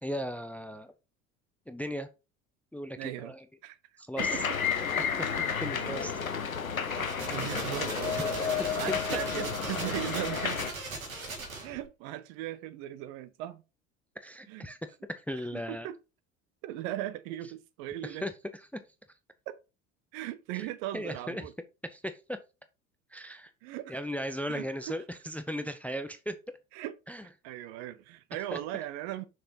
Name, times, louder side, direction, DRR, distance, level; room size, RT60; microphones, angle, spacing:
voice 1, 0.0-0.9 1.7-2.1 2.7-3.4 4.0-4.3 5.4-6.1 7.4-7.5 8.6-9.4 14.2-14.8 15.1-15.9 18.0-18.3 18.7-18.8 20.5-20.7 20.9-21.4 21.9-22.4 23.1-23.5 23.9-26.4 27.1-27.2 28.5-28.6, equal, 5° left, 0.5 m, -37 dB
voice 2, 3.0-3.3 3.6-3.8 4.2-4.6 5.7-6.0 6.9-10.6 11.6-13.6 14.5-14.7 15.5-16.0 16.6-18.3 19.5-19.6 20.1-21.5 23.6-24.0 24.5-25.0 26.7-26.9 27.2-29.3, right 14 dB, 55° right, 0.8 m, -38 dB
sound 1, 4.2-10.7, left 6 dB, 90° left, 0.8 m, -31 dB
sound 2, 6.9-11.9, right 3 dB, 80° right, 2.0 m, -40 dB
6.4 x 6.0 x 2.8 m
figure-of-eight pair, 65°, 40 cm